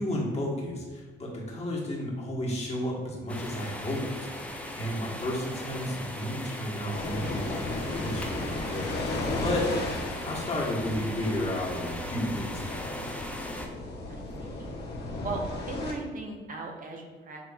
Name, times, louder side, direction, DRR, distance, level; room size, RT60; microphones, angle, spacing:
voice 1, 0.0-4.0 4.5-9.7 10.0-13.0, left 1 dB, 30° left, -3 dB, 1.4 m, -33 dB
sound 1, 3.3-13.7, left 1 dB, 5° left, 0.5 m, -39 dB
voice 2, 4.7-5.1 14.1-14.7 15.2-17.5, right 3 dB, 45° right, 1 dB, 0.9 m, -38 dB
sound 2, 6.9-15.9, left 2 dB, 55° left, 1.0 m, -35 dB
7.2 x 2.9 x 2.4 m, 1.3 s
cardioid pair, 90°, 20 cm